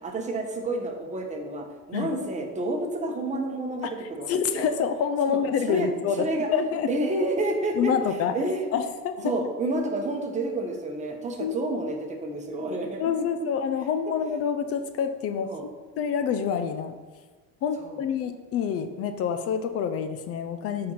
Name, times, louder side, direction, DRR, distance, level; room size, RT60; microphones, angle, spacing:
voice 1, 0.0-4.7 5.3-5.4 5.7-5.9 6.1-6.5 6.9-7.9 8.3-8.7 9.2-13.3 14.1-14.2 15.4-15.6 17.8-18.0, right 2 dB, 25° right, 2 dB, 1.1 m, -29 dB
voice 2, 3.8-6.9 7.8-8.4 8.7-9.3 11.4-11.6 13.0-15.5 16.0-17.0 17.6-20.9, left 7 dB, 50° left, 9 dB, 0.6 m, -27 dB
7.3 x 4.3 x 5.7 m, 1.3 s
cardioid pair, 140°, 30 cm